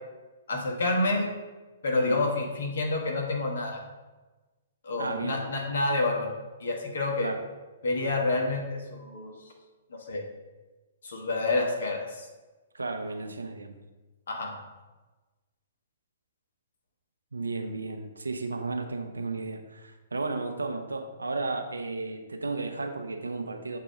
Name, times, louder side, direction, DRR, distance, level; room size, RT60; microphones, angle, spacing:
voice 1, 0.5-1.3 1.8-3.8 4.8-6.3 6.6-7.3 7.8-9.3 9.9-10.2 11.0-12.3 14.3-14.6, left 2 dB, 70° left, 1 dB, 1.3 m, -28 dB
voice 2, 1.9-2.3 5.0-5.4 7.2-7.4 12.7-13.7 17.3-23.8, right 3 dB, 90° right, 6 dB, 0.7 m, -33 dB
7.2 x 2.8 x 5.0 m, 1.2 s
hypercardioid pair, 125°, 0 cm